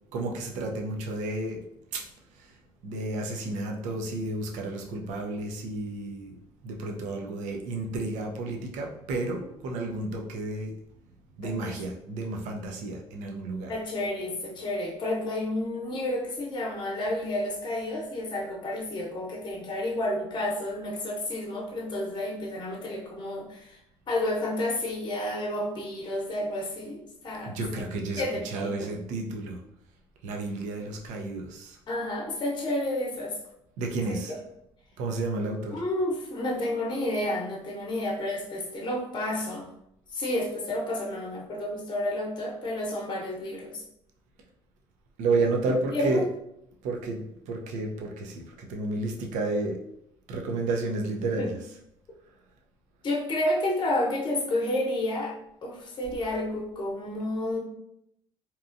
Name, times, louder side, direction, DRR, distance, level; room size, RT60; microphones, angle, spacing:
voice 1, 0.1-1.6 1.9-2.0 2.8-10.7 11.4-13.8 27.5-29.6 30.2-31.8 33.8-34.4 35.0-35.8 45.2-46.3 46.8-49.8 50.3-51.8, right 2 dB, 75° right, 2 dB, 0.6 m, -31 dB
voice 2, 11.4-11.8 13.7-23.8 24.1-27.8 28.2-28.9 31.9-33.4 34.1-34.2 35.7-39.7 40.1-43.8 45.9-46.2 51.4-51.5 53.0-57.6, left 1 dB, 35° left, -2 dB, 0.8 m, -30 dB
2.9 x 2.3 x 2.5 m, 0.78 s
supercardioid pair, 80°, 13 cm